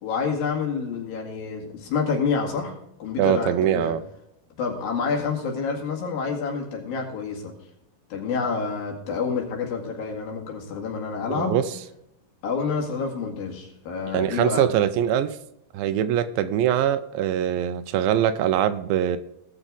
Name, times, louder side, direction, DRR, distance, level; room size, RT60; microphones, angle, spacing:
voice 1, 0.0-2.7 3.0-3.9 4.6-7.5 8.1-11.6 12.4-14.7, left 5 dB, 75° left, 1 dB, 3.8 m, -28 dB
voice 2, 3.2-4.0 11.3-11.7 14.1-15.4 15.7-19.2, right 10 dB, 80° right, 12 dB, 2.3 m, -23 dB
18.0 x 6.6 x 3.8 m, 0.81 s
omnidirectional pair, 4.2 m